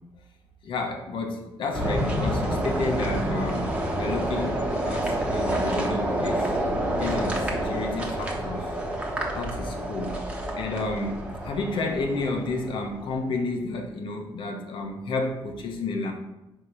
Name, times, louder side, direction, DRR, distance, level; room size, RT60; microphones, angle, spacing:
voice 1, 0.6-6.5 7.0-8.7 9.3-10.2 10.6-16.1, left 3 dB, 65° left, 3 dB, 1.1 m, -31 dB
sound 1, 1.7-12.9, right 1 dB, 15° right, 1.2 m, -28 dB
5.0 x 3.7 x 5.6 m, 0.96 s
cardioid pair, 110°, 9 cm